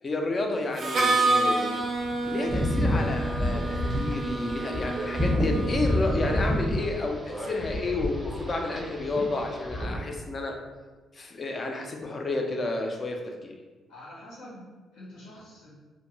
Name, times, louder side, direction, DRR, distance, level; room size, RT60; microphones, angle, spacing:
voice 1, 0.0-1.8 2.2-10.6 11.1-13.5, left 2 dB, 35° left, 2 dB, 0.4 m, -31 dB
Harmonica, 0.8-6.5, right 2 dB, 50° right, 0.4 m, -29 dB
sound 1, 2.5-9.8, left 1 dB, 10° right, 0.7 m, -29 dB
Thunder, 6.0-10.0, equal, 65° left, 0.7 m, -49 dB
voice 2, 13.9-15.7, left 1 dB, 80° left, -6 dB, 1.1 m, -46 dB
2.6 x 2.1 x 3.0 m, 1.3 s
cardioid pair, 90°, 0 cm